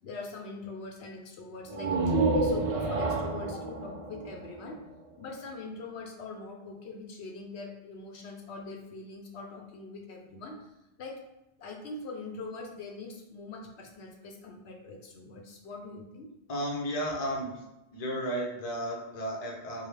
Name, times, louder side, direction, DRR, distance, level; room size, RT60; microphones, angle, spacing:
voice 1, 0.0-4.8 5.2-10.7 11.0-11.2 11.6-16.3, left 3 dB, 70° left, 2 dB, 0.9 m, -43 dB
sound 1, 1.7-5.3, right 3 dB, 40° right, 0.5 m, -29 dB
voice 2, 16.5-17.6 17.9-19.9, equal, 40° left, -1 dB, 0.7 m, -33 dB
4.7 x 2.3 x 3.3 m, 0.93 s
omnidirectional pair, 1.2 m